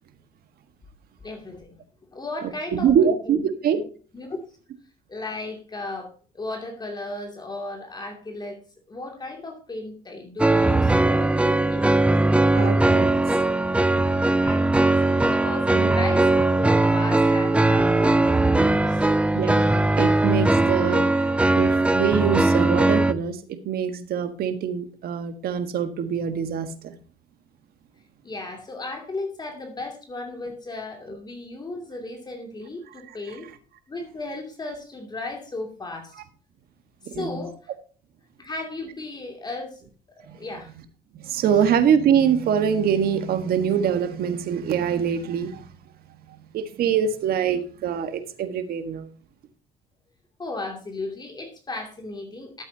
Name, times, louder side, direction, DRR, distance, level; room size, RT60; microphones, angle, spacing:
voice 1, 1.2-3.4 3.7-3.8 4.1-4.4 5.1-8.6 8.9-11.9 14.4-14.9 15.3-19.1 28.2-33.5 33.9-36.1 37.0-37.7 38.4-40.7 50.4-52.6, left 2 dB, 25° left, 2.6 m, -35 dB
voice 2, 2.7-3.8 12.5-13.1 15.7-15.9 19.3-27.0 36.1-36.2 37.0-37.5 40.3-40.4 41.1-45.7 46.3-49.1, right 8 dB, 65° right, 1.5 m, -24 dB
sound 1, 10.4-23.1, right 2 dB, 5° right, 0.6 m, -20 dB
13.0 x 8.2 x 2.8 m
cardioid pair, 110°, 17 cm